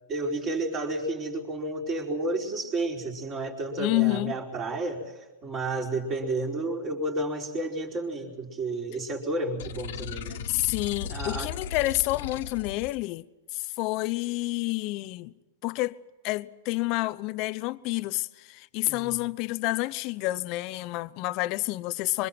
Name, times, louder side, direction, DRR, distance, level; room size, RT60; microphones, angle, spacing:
voice 1, 0.1-5.1 5.4-10.4 11.1-11.5 18.9-19.2, right 2 dB, 25° right, 4.8 m, -31 dB
voice 2, 3.8-4.3 10.5-13.3 13.5-15.3 15.6-16.0 16.2-22.3, left 20 dB, 35° left, 0.8 m, -29 dB
sound 1, 9.6-13.0, left 8 dB, 65° left, 1.7 m, -36 dB
26.0 x 24.5 x 6.1 m
supercardioid pair, 160°, 0 cm